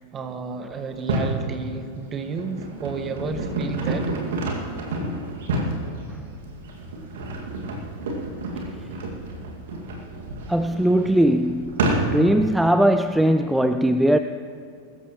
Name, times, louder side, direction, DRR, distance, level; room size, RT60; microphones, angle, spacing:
voice 1, 0.1-4.1, right 4 dB, 25° right, 7 dB, 1.3 m, -31 dB
sound 1, 0.9-1.4 2.0-12.4, right 2 dB, 60° right, 2.1 m, -29 dB
voice 2, 10.5-11.8 12.1-14.2, right 1 dB, 5° right, 9 dB, 0.4 m, -19 dB
22.0 x 13.5 x 3.1 m, 2.2 s
figure-of-eight pair, 90°, 0 cm